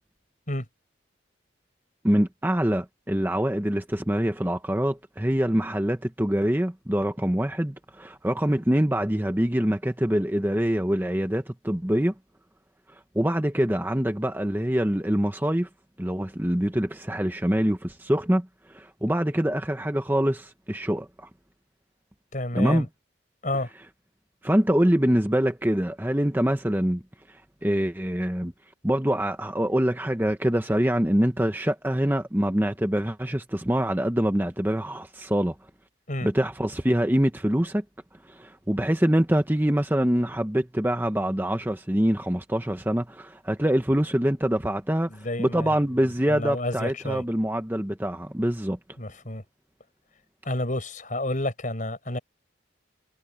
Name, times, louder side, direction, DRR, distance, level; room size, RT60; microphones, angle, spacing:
voice 1, 2.0-12.1 12.9-15.7 16.0-21.3 22.5-22.9 24.4-27.0 27.3-28.5 28.8-35.6 36.2-37.8 38.2-48.8, equal, 10° right, 0.9 m, -25 dB
voice 2, 22.3-22.9 23.4-23.7 36.1-36.3 45.1-45.8 46.3-47.2 49.0-49.4 50.5-52.2, left 1 dB, 40° left, 5.2 m, -30 dB
head